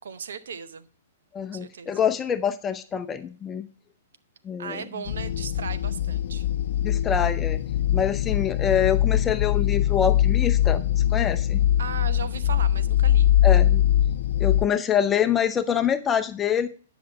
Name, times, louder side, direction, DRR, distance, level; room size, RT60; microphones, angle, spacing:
voice 1, 0.0-0.9 1.4-2.0 4.6-6.5 11.8-13.3, right 6 dB, 70° right, 0.9 m, -37 dB
voice 2, 1.3-3.7 4.4-4.8 6.8-7.6 7.9-11.6 13.4-13.8 14.4-16.7, left 8 dB, 20° left, 0.7 m, -25 dB
sound 1, 5.1-14.7, left 11 dB, 60° left, 0.4 m, -22 dB
10.0 x 6.1 x 5.3 m
figure-of-eight pair, 115°, 0 cm